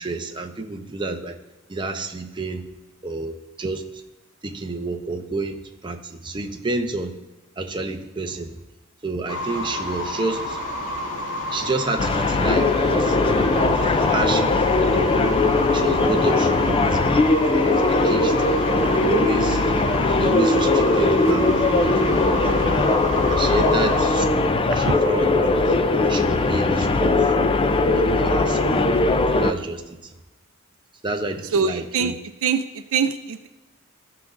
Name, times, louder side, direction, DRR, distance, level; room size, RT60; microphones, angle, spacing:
voice 1, 0.0-1.4 1.7-2.7 3.0-3.8 4.4-7.2 7.6-8.5 9.0-10.6 11.5-13.2 13.6-15.1 15.7-17.2 17.5-18.4 19.0-19.7 20.2-21.9 22.5-22.7 23.3-25.8 26.1-27.5 27.9-28.8 29.3-30.0 31.0-32.1, right 3 dB, 20° right, 4 dB, 0.7 m, -29 dB
sound 1, 9.3-24.0, equal, 85° left, 1.3 m, -30 dB
sound 2, 12.0-29.5, left 3 dB, 25° left, 0.4 m, -20 dB
voice 2, 31.5-32.1 32.4-33.5, right 6 dB, 70° right, 9 dB, 0.4 m, -23 dB
14.5 x 5.9 x 2.5 m, 1.1 s
head